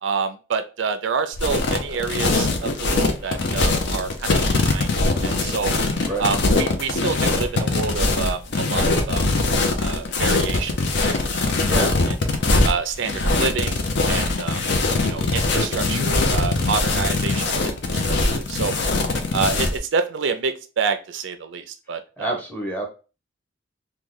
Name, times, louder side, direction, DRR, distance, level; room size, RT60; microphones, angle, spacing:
voice 1, 0.0-4.4 4.6-5.8 6.2-9.3 9.8-10.8 11.1-11.5 12.6-14.6 15.0-18.7 19.3-22.4, right 5 dB, 65° right, 8 dB, 0.4 m, -28 dB
sound 1, 1.3-19.8, left 2 dB, 60° left, 0.6 m, -22 dB
voice 2, 22.2-22.8, right 1 dB, 10° left, 1 dB, 0.8 m, -27 dB
3.1 x 2.2 x 3.6 m, 0.33 s
head